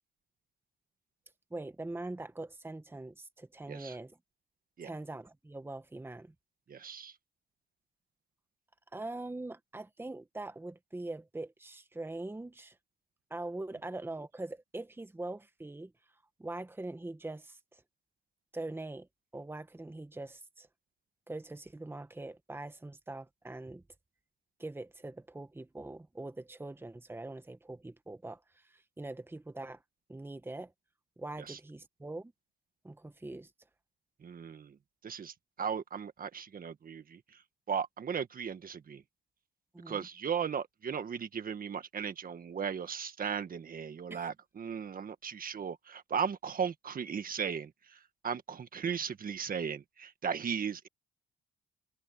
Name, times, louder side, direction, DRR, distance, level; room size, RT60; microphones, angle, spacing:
voice 1, 1.5-4.2 4.8-6.3 8.9-12.8 13.3-15.9 16.4-17.8 18.5-19.1 19.3-20.7 21.3-23.8 24.6-29.8 30.1-30.7 31.2-32.3 32.8-33.5 39.7-40.1 44.1-44.2, right 2 dB, 10° right, 1.5 m, -42 dB
voice 2, 6.7-7.1 31.5-31.6 34.2-34.8 35.0-37.4 37.7-39.0 39.9-50.9, right 7 dB, 45° right, 1.7 m, -37 dB
cardioid pair, 90°, 20 cm